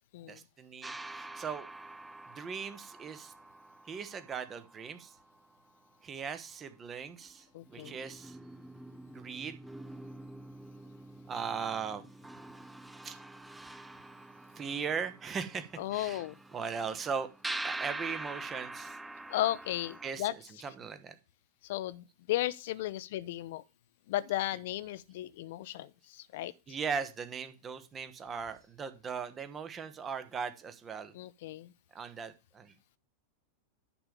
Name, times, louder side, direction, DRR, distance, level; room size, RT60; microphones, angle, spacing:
voice 1, 0.3-1.7 2.3-3.3 3.8-5.1 6.0-8.4 9.1-9.6 11.3-12.0 13.0-13.2 14.6-16.2 16.5-17.3 17.6-19.0 20.0-20.3 20.6-21.1 26.7-31.1 31.9-32.7, right 6 dB, 25° right, 1.0 m, -39 dB
sound 1, 0.8-5.7 7.2-7.3 7.7-20.1, right 2 dB, 5° right, 0.4 m, -45 dB
voice 2, 7.5-7.9 15.8-16.4 19.3-20.3 21.6-23.6 24.1-26.5 31.1-31.7, left 14 dB, 55° left, 0.6 m, -35 dB
10.0 x 3.5 x 6.9 m
figure-of-eight pair, 90°, 0 cm